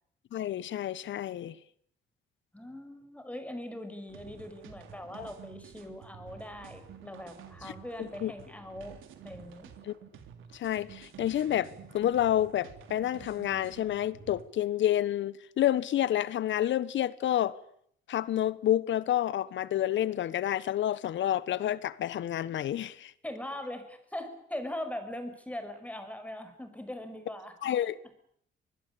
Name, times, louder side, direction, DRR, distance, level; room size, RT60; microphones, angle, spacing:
voice 1, 0.3-1.6 5.2-5.3 7.6-7.7 8.0-8.3 9.8-9.9 10.5-17.6 18.1-23.1 27.6-28.0, left 12 dB, 70° left, 1.2 m, -29 dB
voice 2, 2.5-9.7 23.2-27.5, left 1 dB, 5° left, 5.9 m, -41 dB
sound 1, 4.1-14.4, right 8 dB, 85° right, 3.4 m, -50 dB
25.0 x 20.5 x 8.6 m
cardioid pair, 90°, 20 cm